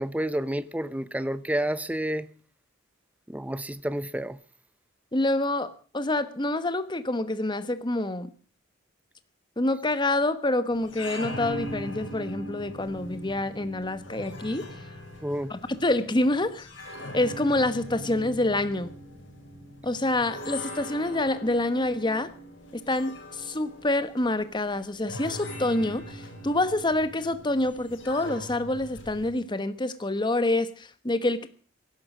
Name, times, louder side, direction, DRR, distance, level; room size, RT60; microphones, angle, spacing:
voice 1, 0.0-2.3 3.3-4.4 15.2-15.5, right 1 dB, 10° right, 0.8 m, -29 dB
voice 2, 5.1-8.3 9.6-14.7 15.5-16.7 17.1-18.9 19.8-22.3 22.7-31.5, left 2 dB, 25° left, 1.2 m, -27 dB
sound 1, 10.7-29.3, left 1 dB, 70° left, 6.0 m, -41 dB
17.5 x 12.0 x 6.1 m
head